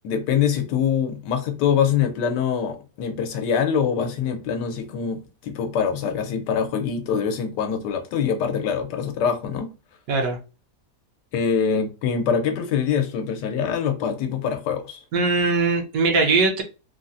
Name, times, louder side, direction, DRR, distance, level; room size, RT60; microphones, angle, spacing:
voice 1, 0.0-9.7 11.3-15.0, left 7 dB, 85° left, 1.3 m, -24 dB
voice 2, 10.1-10.4 15.1-16.6, right 3 dB, 65° right, 1.0 m, -20 dB
3.6 x 2.0 x 2.5 m
omnidirectional pair, 1.8 m